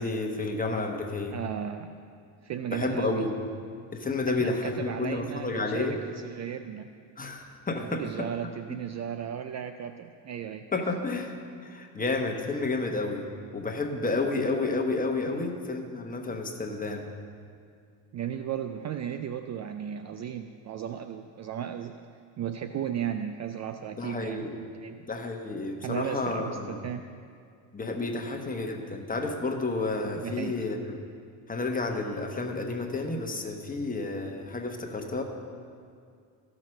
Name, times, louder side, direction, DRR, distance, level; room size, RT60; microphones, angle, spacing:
voice 1, 0.0-1.4 2.7-3.3 3.9-6.0 7.2-8.3 10.7-11.3 11.6-13.3 13.5-17.1 24.0-24.6 25.1-26.9 27.7-31.0 31.5-35.2, left 3 dB, 20° left, 3 dB, 1.2 m, -31 dB
voice 2, 1.3-2.0 2.4-3.3 4.3-6.9 7.8-10.7 15.3-15.4 18.1-22.0 22.4-25.0 25.8-27.0 30.2-30.6, right 9 dB, 40° right, 8 dB, 0.4 m, -35 dB
13.5 x 6.1 x 6.5 m, 2.3 s
cardioid pair, 100°, 46 cm